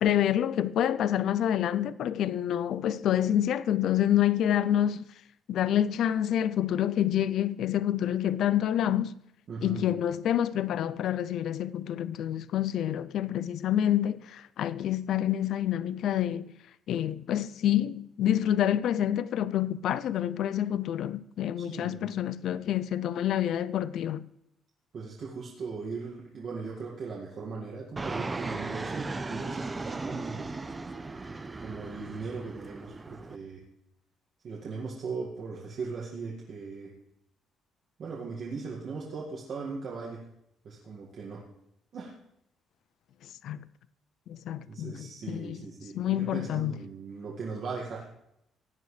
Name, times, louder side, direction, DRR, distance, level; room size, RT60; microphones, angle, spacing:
voice 1, 0.0-5.0 5.5-9.1 9.6-16.5 16.9-24.3 43.4-43.6 44.3-45.6 45.9-46.7, left 11 dB, 70° left, 0.4 m, -27 dB
voice 2, 9.5-10.0 21.6-22.1 24.9-30.5 31.6-33.6 34.4-36.9 38.0-40.2 40.6-41.4 41.9-42.1 44.7-48.1, right 4 dB, 55° right, 1.9 m, -38 dB
Fixed-wing aircraft airplane, 28.0-33.4, right 3 dB, 20° right, 0.7 m, -37 dB
16.5 x 9.5 x 3.3 m
cardioid pair, 110°, 0 cm